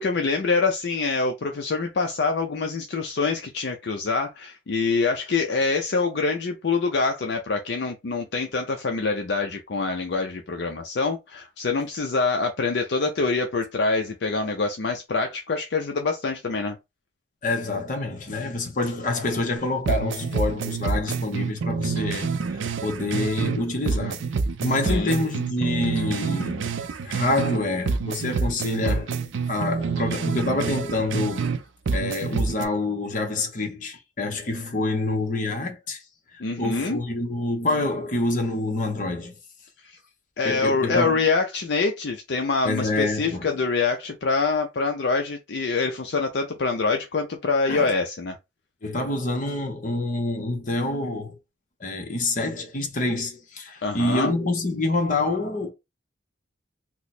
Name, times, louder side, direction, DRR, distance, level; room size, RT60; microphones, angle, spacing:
voice 1, 0.0-16.8 24.8-25.1 36.4-37.0 39.8-40.0 40.4-48.4 53.8-54.3, left 4 dB, 60° left, 0.5 m, -25 dB
voice 2, 17.4-24.3 24.6-26.8 27.0-29.1 29.5-31.5 31.9-36.0 36.3-39.3 40.4-41.2 42.6-43.4 47.7-47.9 48.8-51.4 51.8-55.7, left 2 dB, 45° left, 0.8 m, -27 dB
call and response xtra bass, 19.6-19.7 19.8-23.6 23.8-27.6 27.8-31.6 31.9-32.6, right 5 dB, 90° right, 0.4 m, -27 dB
3.0 x 2.1 x 4.1 m
head